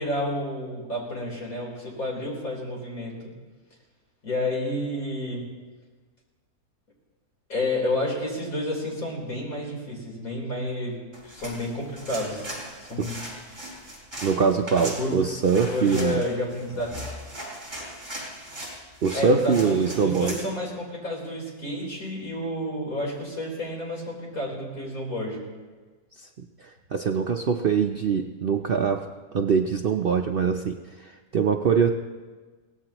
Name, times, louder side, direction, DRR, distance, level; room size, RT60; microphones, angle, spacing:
voice 1, 0.0-3.3 4.2-5.5 7.5-12.5 12.8-13.1 14.7-15.1 15.7-17.0 19.1-25.4, left 1 dB, 55° left, -3 dB, 4.5 m, -30 dB
sound 1, 11.1-20.4, right 1 dB, 25° right, 5.2 m, -39 dB
voice 2, 14.2-16.2 19.0-20.4 26.2-26.3 26.6-31.9, right 6 dB, 70° right, 4 dB, 0.5 m, -23 dB
23.0 x 18.0 x 3.0 m, 1.3 s
omnidirectional pair, 1.8 m